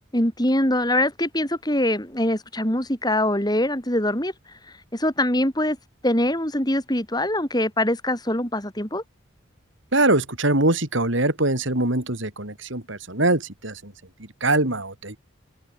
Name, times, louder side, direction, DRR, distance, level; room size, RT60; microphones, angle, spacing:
voice 1, 0.1-4.3 4.9-5.8 6.0-9.0, left 1 dB, 20° left, 4.6 m, -23 dB
voice 2, 9.9-13.9 14.4-15.2, right 2 dB, 65° right, 3.9 m, -23 dB
open air
head